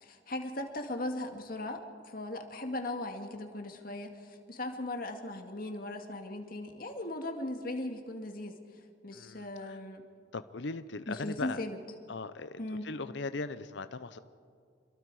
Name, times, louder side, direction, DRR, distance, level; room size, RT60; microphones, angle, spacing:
voice 1, 0.0-10.0 11.1-11.8 12.6-12.9, left 1 dB, 45° left, 4 dB, 2.0 m, -38 dB
voice 2, 9.2-9.7 10.3-11.6 12.1-12.6 12.8-14.2, left 3 dB, 65° left, 11 dB, 0.7 m, -39 dB
27.5 x 22.5 x 4.8 m, 2.1 s
head